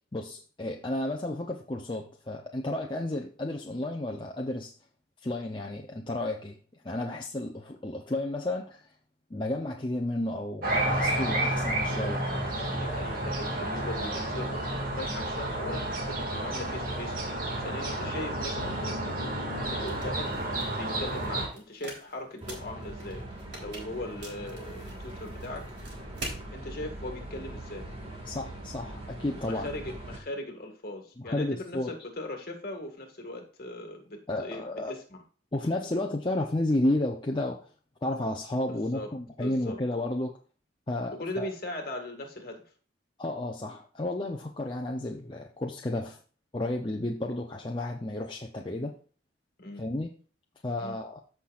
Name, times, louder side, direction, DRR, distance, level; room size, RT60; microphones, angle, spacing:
voice 1, 0.1-4.7 5.2-6.6 6.8-8.9 9.3-12.2 28.3-29.7 31.2-32.0 34.3-34.9 35.5-37.7 38.0-40.3 40.9-41.5 43.2-46.2 46.5-48.9 49.8-50.1 50.6-51.2, left 1 dB, 25° left, 1 dB, 0.6 m, -32 dB
sound 1, 10.6-21.5, right 1 dB, 45° right, 2.1 m, -31 dB
voice 2, 12.5-17.3 17.6-19.2 19.7-20.3 20.7-23.3 23.5-25.6 26.5-27.9 29.5-35.2 38.7-39.1 39.4-39.8 41.1-42.6 49.6-49.8 50.8-51.0, left 1 dB, 50° left, 2 dB, 1.9 m, -39 dB
sound 2, 19.8-26.4, right 2 dB, 65° right, 3.5 m, -45 dB
sound 3, 22.4-30.2, right 1 dB, 30° right, 1.9 m, -42 dB
14.5 x 5.9 x 2.5 m, 0.40 s
head